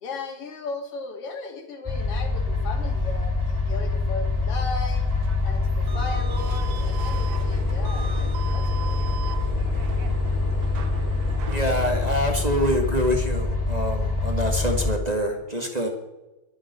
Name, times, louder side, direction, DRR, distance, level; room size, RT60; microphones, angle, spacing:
voice 1, 0.0-5.1 5.4-9.0, left 3 dB, 55° left, 4 dB, 3.1 m, -36 dB
sound 1, 1.9-14.9, left 3 dB, 15° left, 4.7 m, -25 dB
sound 2, 5.0-11.6, right 8 dB, 60° right, 1.4 m, -40 dB
sound 3, 5.9-12.2, left 4 dB, 70° left, 3.5 m, -39 dB
voice 2, 11.5-15.9, equal, 20° right, 2 dB, 1.5 m, -25 dB
23.0 x 7.6 x 6.8 m, 1.0 s
omnidirectional pair, 3.3 m